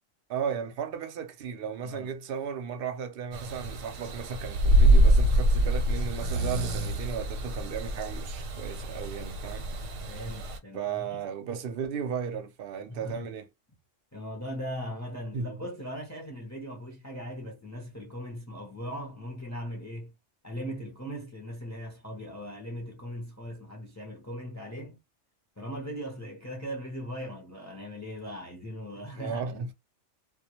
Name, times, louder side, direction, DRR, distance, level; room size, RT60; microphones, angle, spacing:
voice 1, 0.3-9.7 10.7-13.5 15.3-15.6 29.2-29.7, right 7 dB, 60° right, 0.6 m, -35 dB
voice 2, 1.8-2.1 10.1-11.2 12.9-13.3 14.1-20.1 20.4-25.0 25.6-29.6, equal, 25° left, 0.4 m, -39 dB
sound 1, 3.3-10.6, right 1 dB, 90° right, 1.0 m, -25 dB
2.2 x 2.1 x 2.8 m
omnidirectional pair, 1.3 m